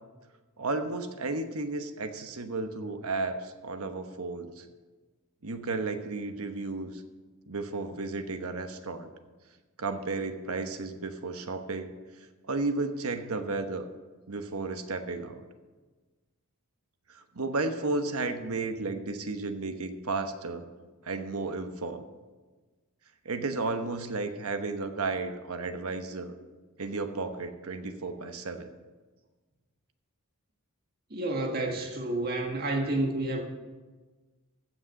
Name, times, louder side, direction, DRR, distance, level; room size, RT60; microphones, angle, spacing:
voice 1, 0.6-4.7 5.4-7.0 7.5-9.1 9.8-11.9 12.4-13.9 14.3-15.5 17.1-20.6 21.0-22.0 23.2-26.4 26.8-28.7, right 3 dB, 80° right, 7 dB, 1.1 m, -33 dB
voice 2, 31.1-33.4, right 2 dB, 45° right, 1 dB, 1.6 m, -30 dB
15.5 x 6.4 x 6.4 m, 1.3 s
head